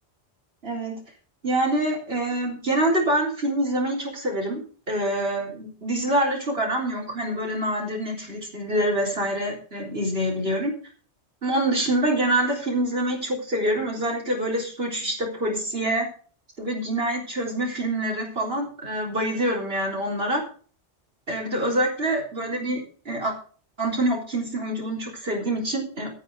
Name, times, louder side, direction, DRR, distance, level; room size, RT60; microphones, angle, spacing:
voice 1, 0.6-1.0 1.4-10.7 11.4-16.1 16.6-20.4 21.3-22.8 23.1-23.3 23.8-26.1, right 1 dB, 60° right, -1 dB, 4.1 m, -26 dB
13.0 x 9.9 x 5.2 m, 0.41 s
omnidirectional pair, 1.2 m